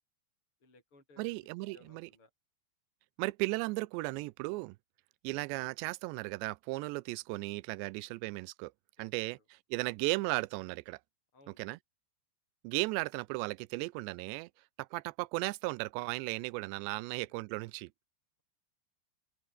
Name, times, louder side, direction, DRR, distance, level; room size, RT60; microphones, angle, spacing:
voice 1, 0.6-2.3 7.8-8.2 9.0-9.4 11.3-11.6 16.9-17.0, left 2 dB, 25° left, 8.7 m, -62 dB
voice 2, 1.2-2.1 3.2-4.8 5.2-8.7 9.0-9.4 9.7-11.0 11.6-11.8 12.6-14.5 14.8-17.9, right 23 dB, 85° right, 2.5 m, -36 dB
open air
omnidirectional pair, 5.5 m